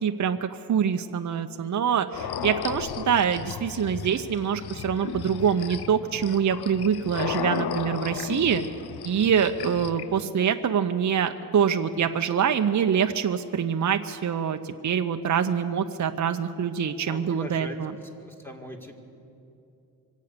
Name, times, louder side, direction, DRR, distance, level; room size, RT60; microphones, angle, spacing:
voice 1, 0.0-8.6 9.0-18.0, right 7 dB, 50° right, 7 dB, 0.7 m, -25 dB
sound 1, 2.1-10.2, left 9 dB, 75° left, 0.6 m, -34 dB
voice 2, 17.1-17.8 18.2-18.9, equal, 5° left, 2 dB, 1.9 m, -40 dB
24.0 x 8.3 x 6.7 m, 2.7 s
cardioid pair, 75°, 39 cm